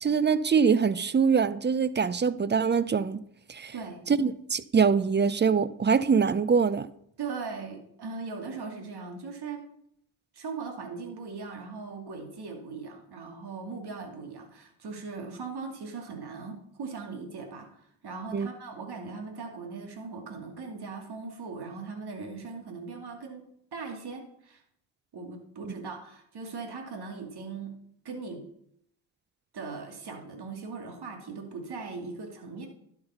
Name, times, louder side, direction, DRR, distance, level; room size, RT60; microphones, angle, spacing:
voice 1, 0.0-3.2 3.5-3.7 4.1-6.9 18.3-18.5, right 6 dB, 25° right, 0.6 m, -24 dB
voice 2, 7.2-9.7 10.3-23.4 23.7-24.6 25.1-27.7 28.0-28.4 29.5-32.7, right 4 dB, 55° right, 2.4 m, -39 dB
11.5 x 6.0 x 5.6 m
supercardioid pair, 50°, 46 cm